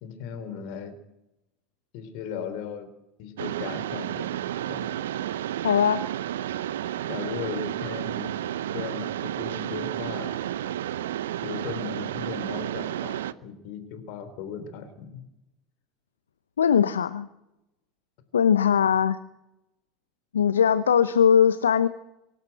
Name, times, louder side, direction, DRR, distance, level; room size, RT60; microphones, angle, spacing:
voice 1, 0.0-1.0 1.9-2.9 3.2-4.3 4.7-4.9 7.1-8.3 8.7-10.3 11.4-15.1, left 7 dB, 55° left, 10 dB, 3.4 m, -37 dB
Mechanisms, 3.4-13.3, right 11 dB, 70° right, 0.7 m, -31 dB
voice 2, 5.6-6.0 16.6-17.3 18.3-19.2 20.3-21.9, left 8 dB, 75° left, 14 dB, 0.7 m, -20 dB
24.0 x 12.0 x 9.1 m, 0.88 s
figure-of-eight pair, 75°, 0 cm